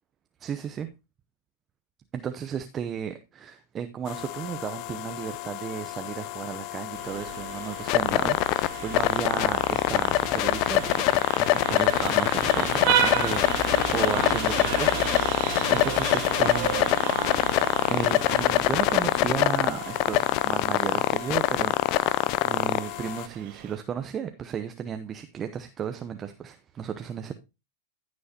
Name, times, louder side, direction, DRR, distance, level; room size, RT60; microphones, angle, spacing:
voice 1, 0.4-0.9 2.1-15.0 15.7-16.9 17.9-27.3, right 8 dB, 30° right, 0.8 m, -34 dB
sound 1, 4.1-23.3, left 17 dB, 50° left, 0.4 m, -25 dB
Vehicle horn car horn honking, 6.9-23.8, right 9 dB, 55° right, 2.0 m, -33 dB
14.5 x 6.3 x 2.9 m
hypercardioid pair, 105°, 0 cm